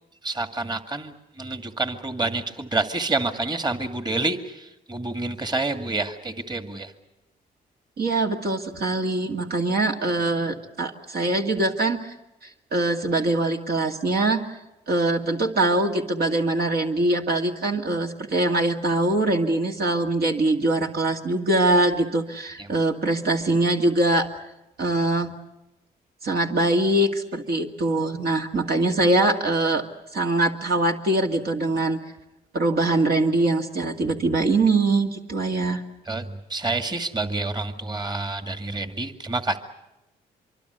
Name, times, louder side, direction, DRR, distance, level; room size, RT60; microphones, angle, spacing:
voice 1, 0.2-6.9 22.6-22.7 36.1-39.6, right 3 dB, 25° right, 7 dB, 2.2 m, -28 dB
voice 2, 8.0-12.1 12.7-14.5 14.9-24.3 24.8-25.3 26.2-29.8 30.1-32.0 32.5-35.8, right 2 dB, 60° right, 2 dB, 2.3 m, -23 dB
25.0 x 23.5 x 8.1 m, 0.94 s
supercardioid pair, 65°, 18 cm